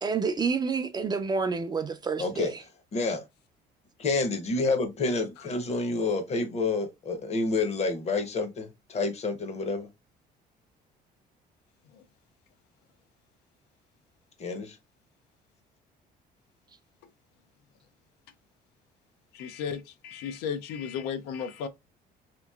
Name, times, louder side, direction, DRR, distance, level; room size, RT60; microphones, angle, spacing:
voice 1, 0.0-2.6, right 5 dB, 25° right, 0.4 m, -29 dB
voice 2, 2.2-2.5 2.9-3.2 4.0-9.9 14.4-14.8, left 3 dB, 40° left, 0.8 m, -28 dB
voice 3, 19.3-21.7, left 7 dB, 90° left, 0.4 m, -34 dB
2.9 x 2.4 x 2.3 m
cardioid pair, 110°, 17 cm